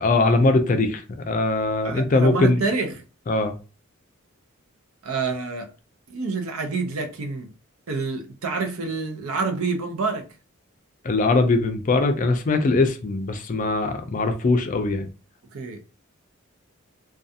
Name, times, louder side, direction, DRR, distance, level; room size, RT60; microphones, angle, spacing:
voice 1, 0.0-2.6 3.3-3.6 11.0-15.1, left 3 dB, 40° left, 0.4 m, -21 dB
voice 2, 1.8-3.0 5.0-5.7 6.1-7.5 7.9-10.3 15.5-15.9, right 4 dB, 80° right, 0.6 m, -27 dB
2.4 x 2.3 x 2.6 m
head